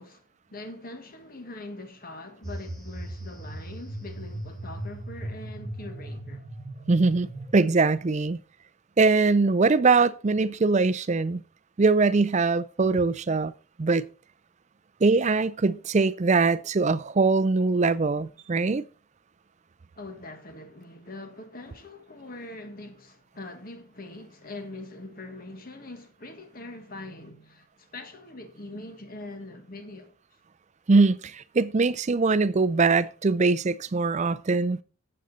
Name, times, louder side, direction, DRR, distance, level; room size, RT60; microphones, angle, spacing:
voice 1, 0.0-6.4 20.0-30.1, left 2 dB, 40° left, 1.5 m, -42 dB
sound 1, 2.4-7.5, right 1 dB, 5° left, 2.8 m, -38 dB
voice 2, 6.9-8.4 9.0-11.4 11.8-13.5 13.8-14.1 15.0-18.8 30.9-34.8, right 3 dB, 30° right, 0.4 m, -22 dB
9.5 x 7.9 x 4.0 m
head